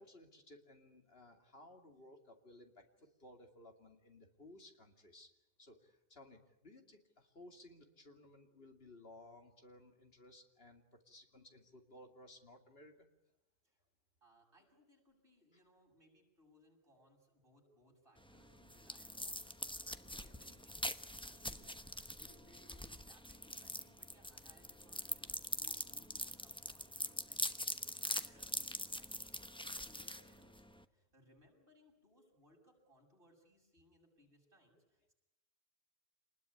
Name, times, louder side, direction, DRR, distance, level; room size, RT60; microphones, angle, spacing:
voice 1, 0.0-5.3 5.6-13.1 31.0-31.1, left 1 dB, 55° left, 4 dB, 2.8 m, -59 dB
voice 2, 14.2-29.3 29.6-35.1, equal, 55° right, -1 dB, 7.5 m, -68 dB
sound 1, 18.2-30.8, left 1 dB, 5° left, 0.9 m, -43 dB
27.0 x 20.5 x 9.9 m, 0.90 s
omnidirectional pair, 1.2 m